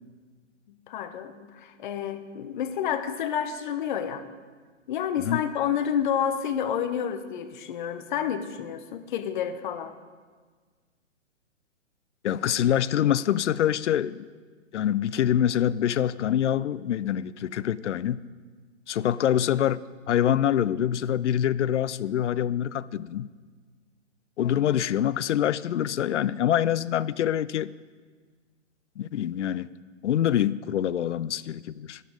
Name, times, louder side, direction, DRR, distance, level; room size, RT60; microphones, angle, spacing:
voice 1, 0.7-4.2 4.9-9.9 24.4-24.6, left 8 dB, 40° left, 10 dB, 0.8 m, -29 dB
voice 2, 12.2-14.3 14.7-18.2 18.9-23.3 24.4-27.7 29.0-29.7 30.0-32.0, left 10 dB, 70° left, 19 dB, 0.5 m, -25 dB
12.0 x 11.0 x 5.0 m, 1.5 s
hypercardioid pair, 130°, 37 cm